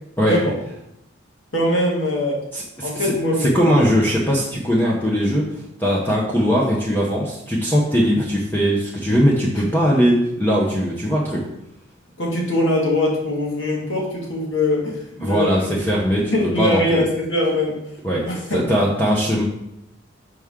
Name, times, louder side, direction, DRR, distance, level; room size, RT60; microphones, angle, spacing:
voice 1, 1.5-2.4 2.8-3.7 6.3-6.4 9.6-9.7 12.2-15.7 16.1-17.8 18.1-18.6, left 1 dB, 75° left, -3 dB, 1.8 m, -22 dB
voice 2, 2.5-3.1 3.4-11.4 15.2-17.0 18.0-18.2 18.5-19.4, equal, 10° left, -4 dB, 0.7 m, -20 dB
5.9 x 4.7 x 3.6 m, 0.80 s
head